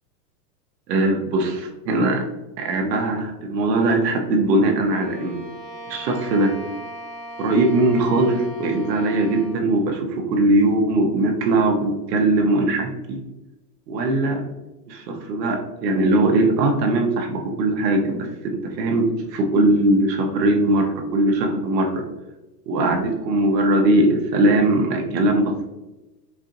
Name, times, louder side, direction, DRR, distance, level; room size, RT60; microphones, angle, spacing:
voice 1, 0.9-2.2 2.6-5.4 5.9-6.5 7.4-13.2 13.9-14.4 14.9-22.0 22.7-25.6, right 2 dB, 80° right, 2 dB, 1.0 m, -20 dB
Bowed string instrument, 4.8-9.6, right 1 dB, 5° right, 1.1 m, -38 dB
4.4 x 2.6 x 2.6 m, 1.0 s
supercardioid pair, 155°, 49 cm